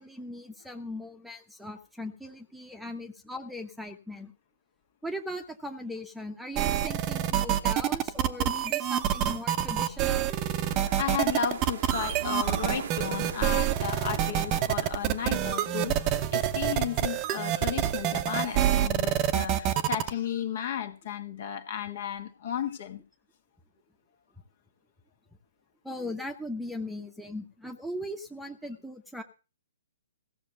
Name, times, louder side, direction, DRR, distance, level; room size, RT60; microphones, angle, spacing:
voice 1, 0.0-4.3 5.0-10.3 25.8-29.2, left 1 dB, ahead, 1.1 m, -39 dB
sound 1, 6.6-20.1, right 11 dB, 30° right, 0.9 m, -27 dB
sound 2, 10.7-15.9, right 8 dB, 50° right, 1.0 m, -40 dB
voice 2, 11.0-23.0, left 9 dB, 50° left, 1.6 m, -34 dB
16.0 x 6.6 x 6.6 m
figure-of-eight pair, 125°, 0 cm